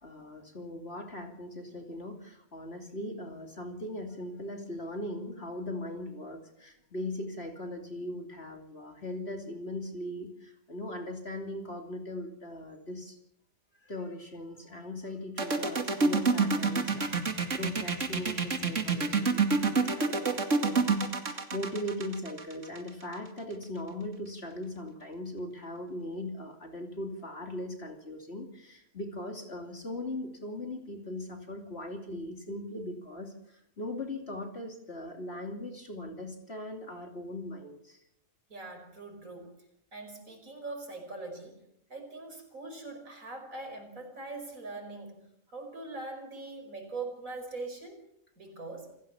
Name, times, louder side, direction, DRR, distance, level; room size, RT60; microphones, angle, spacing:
voice 1, 0.0-13.2 13.8-38.0, left 1 dB, 50° left, 4 dB, 3.1 m, -39 dB
sound 1, 15.4-23.1, right 4 dB, 65° right, 2.6 m, -27 dB
voice 2, 38.5-39.5 39.9-41.6 41.9-45.2 45.5-48.0 48.4-48.9, right 3 dB, 85° right, 3 dB, 5.6 m, -42 dB
28.0 x 17.0 x 7.0 m, 0.75 s
omnidirectional pair, 1.4 m